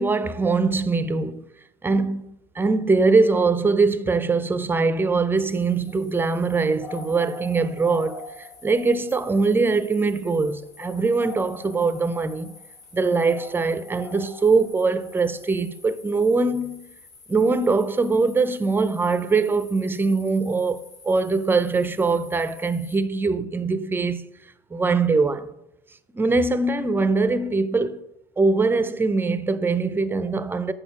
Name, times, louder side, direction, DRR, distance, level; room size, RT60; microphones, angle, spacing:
voice 1, 0.0-1.4 1.8-2.2 2.6-12.6 12.9-16.9 17.3-24.2 24.7-25.5 26.1-28.0 28.4-30.7, right 4 dB, 15° right, 0.5 m, -22 dB
sound 1, 5.3-23.0, left 4 dB, 80° left, 2.2 m, -45 dB
6.3 x 5.0 x 5.9 m
supercardioid pair, 95°, 16 cm